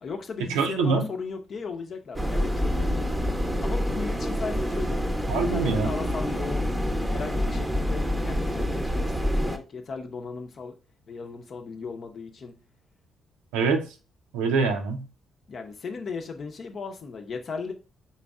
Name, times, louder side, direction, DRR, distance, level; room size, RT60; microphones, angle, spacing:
voice 1, 0.0-3.1 3.6-6.6 7.1-10.7 11.1-12.5 15.5-17.7, left 4 dB, 50° left, 0.7 m, -36 dB
voice 2, 0.5-1.0 5.3-5.9 13.5-13.9 14.3-15.0, right 4 dB, 75° right, 0.6 m, -24 dB
sound 1, 2.1-9.6, equal, 10° right, 0.7 m, -27 dB
4.3 x 3.9 x 2.3 m
figure-of-eight pair, 40°, 0 cm